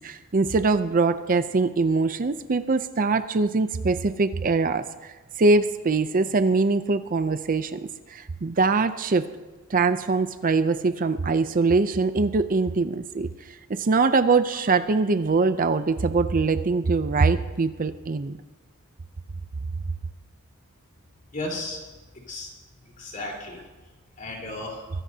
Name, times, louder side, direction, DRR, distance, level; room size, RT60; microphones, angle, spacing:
voice 1, 0.0-7.8 8.1-9.3 9.7-18.4, right 3 dB, 40° right, 11 dB, 0.5 m, -23 dB
voice 2, 21.3-21.8 22.1-22.5 22.8-23.9 24.2-24.9, left 2 dB, 40° left, -2 dB, 4.2 m, -35 dB
23.5 x 16.0 x 2.8 m, 1.3 s
head